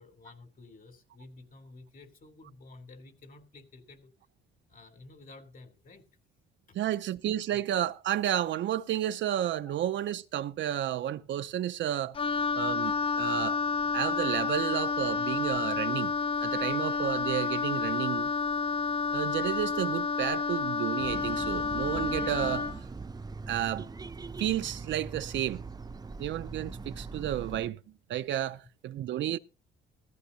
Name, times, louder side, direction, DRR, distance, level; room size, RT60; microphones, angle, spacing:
voice 1, 0.0-4.1 4.7-6.0 6.7-6.8 7.5-7.6 9.6-9.8, left 2 dB, 45° left, 3.2 m, -52 dB
voice 2, 6.7-12.2 12.6-13.6 13.9-16.1 16.4-18.3 19.1-22.7 23.5-23.9 24.4-25.6 26.2-27.8 28.1-29.4, right 12 dB, 70° right, 0.6 m, -31 dB
Wind instrument woodwind instrument, 12.1-22.8, left 5 dB, 30° left, 0.6 m, -30 dB
sound 1, 21.0-27.7, right 4 dB, 20° right, 0.7 m, -41 dB
15.5 x 14.0 x 2.8 m
cardioid pair, 90°, 20 cm